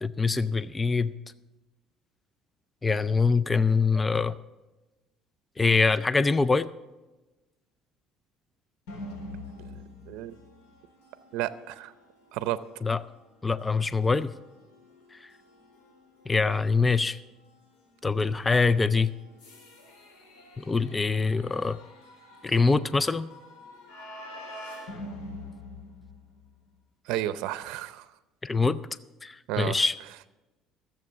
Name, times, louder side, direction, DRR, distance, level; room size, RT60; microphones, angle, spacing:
voice 1, 0.0-1.1 2.8-4.3 5.6-6.7 12.8-13.0 13.4-14.3 15.1-15.3 16.3-17.2 18.0-19.1 20.6-21.8 22.4-23.3 28.4-28.8 29.2-29.9, left 4 dB, 15° left, 16 dB, 0.4 m, -24 dB
sound 1, 8.9-26.6, left 1 dB, 90° left, 4.1 m, -47 dB
voice 2, 11.3-11.9 12.3-12.6 27.1-28.1 29.5-29.8, right 14 dB, 85° right, 14 dB, 0.6 m, -31 dB
14.0 x 7.5 x 7.1 m, 1.1 s
cardioid pair, 120°, 0 cm